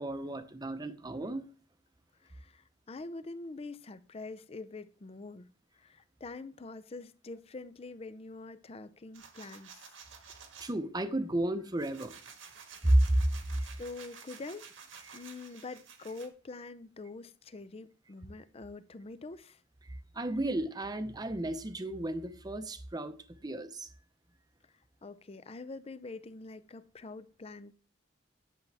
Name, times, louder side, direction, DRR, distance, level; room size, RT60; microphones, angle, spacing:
voice 1, 0.0-1.4 10.6-12.1 12.8-13.2 13.5-13.8 15.1-15.2 20.1-23.2 23.4-23.9, right 1 dB, 20° right, 0.7 m, -31 dB
voice 2, 2.2-9.9 13.8-14.7 15.1-19.6 25.0-27.7, left 3 dB, 30° left, 0.5 m, -45 dB
sound 1, 9.1-10.7 11.3-16.3, right 6 dB, 80° right, 1.6 m, -52 dB
10.5 x 6.9 x 3.4 m
head